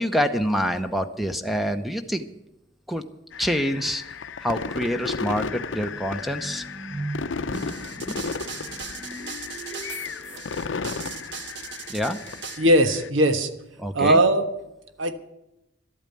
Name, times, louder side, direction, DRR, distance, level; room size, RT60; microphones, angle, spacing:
voice 1, 0.0-2.2 2.9-3.0 3.4-4.0 4.4-6.6 11.9-12.2 13.8-14.2, equal, ahead, 8 dB, 0.7 m, -26 dB
sound 1, 3.3-13.1, left 5 dB, 75° left, 0.6 m, -34 dB
sound 2, 5.9-10.9, right 2 dB, 25° right, 1.2 m, -39 dB
sound 3, 7.5-12.6, right 6 dB, 65° right, 1.4 m, -38 dB
voice 2, 12.6-13.5 13.9-14.5 15.0-15.2, right 1 dB, 85° right, 9 dB, 1.3 m, -19 dB
12.5 x 8.8 x 9.1 m, 0.90 s
head